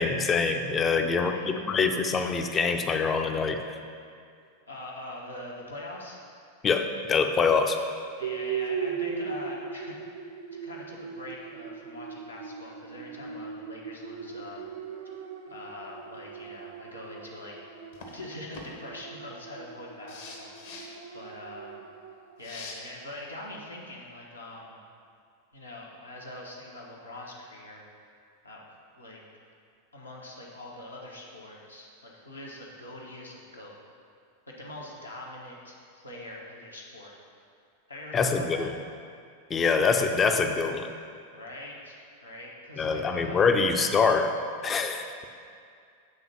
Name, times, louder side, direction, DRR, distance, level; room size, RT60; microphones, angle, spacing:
voice 1, 0.0-3.8 6.6-7.8 38.1-38.7 39.5-40.9 42.8-45.1, left 4 dB, 20° left, 6 dB, 0.5 m, -25 dB
voice 2, 1.1-1.5 4.7-6.2 8.2-14.7 15.5-17.6 18.1-21.9 22.4-24.8 25.5-27.9 28.4-29.2 29.9-33.8 34.5-37.1 37.9-38.7 41.3-43.4, left 1 dB, 80° left, -3 dB, 1.1 m, -43 dB
sound 1, 8.2-22.4, right 6 dB, 65° right, 0.7 m, -39 dB
sound 2, 17.9-18.2 18.5-18.7 20.1-20.9 22.4-22.7, left 4 dB, 55° left, 1.0 m, -43 dB
7.9 x 3.6 x 5.7 m, 2.3 s
figure-of-eight pair, 90°, 0 cm